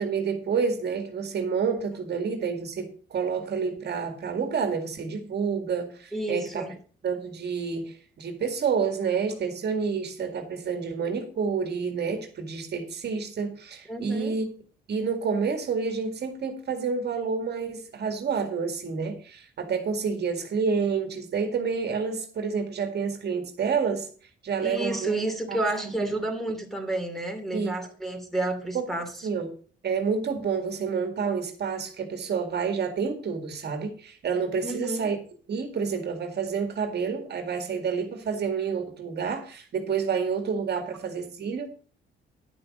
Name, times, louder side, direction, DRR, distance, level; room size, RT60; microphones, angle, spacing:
voice 1, 0.0-6.7 7.0-14.5 14.9-24.1 24.4-25.1 25.5-25.6 25.8-25.9 27.5-27.7 28.7-28.9 29.2-29.5 29.8-35.2 35.5-41.7, right 5 dB, 55° right, 5 dB, 2.0 m, -29 dB
voice 2, 6.1-6.7 13.9-14.4 24.6-29.1 34.6-35.1, right 2 dB, ahead, 4 dB, 2.9 m, -30 dB
11.0 x 6.1 x 6.4 m, 0.42 s
cardioid pair, 90°, 20 cm